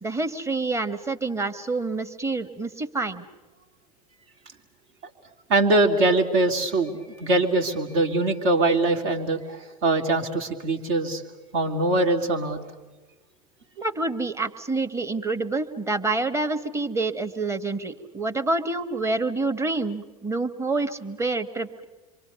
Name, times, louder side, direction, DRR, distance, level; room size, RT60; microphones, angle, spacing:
voice 1, 0.0-3.2 13.8-21.8, right 3 dB, 15° right, 8 dB, 1.3 m, -27 dB
voice 2, 5.5-11.2 11.5-12.6, right 2 dB, 60° right, 5 dB, 2.6 m, -22 dB
27.0 x 24.0 x 6.9 m, 1.2 s
hypercardioid pair, 90°, 19 cm